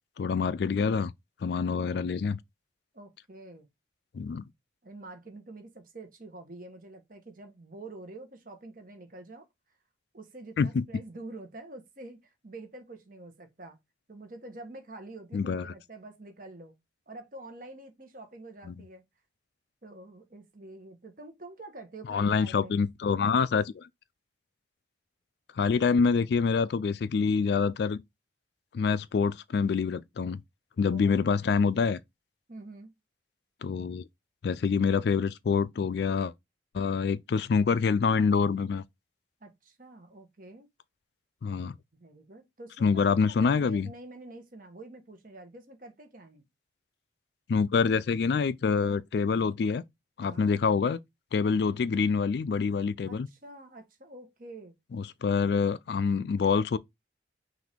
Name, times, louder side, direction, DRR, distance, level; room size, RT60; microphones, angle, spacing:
voice 1, 0.2-1.1 1.4-2.4 4.1-4.4 10.6-10.8 15.3-15.7 18.7-18.8 22.1-23.9 25.6-28.0 28.7-30.4 30.8-32.0 33.6-34.0 34.4-36.3 36.7-38.8 41.4-41.8 42.8-43.9 47.5-49.8 50.2-51.0 51.3-53.3 54.9-56.8, left 5 dB, 55° left, 0.3 m, -26 dB
voice 2, 2.9-3.7 4.8-9.5 10.1-13.8 14.1-16.7 17.1-19.0 19.8-22.8 30.9-31.2 32.5-32.9 39.4-40.7 41.9-46.4 50.2-50.6 53.1-54.8, right 2 dB, 45° right, 1.2 m, -47 dB
5.9 x 2.6 x 3.4 m
head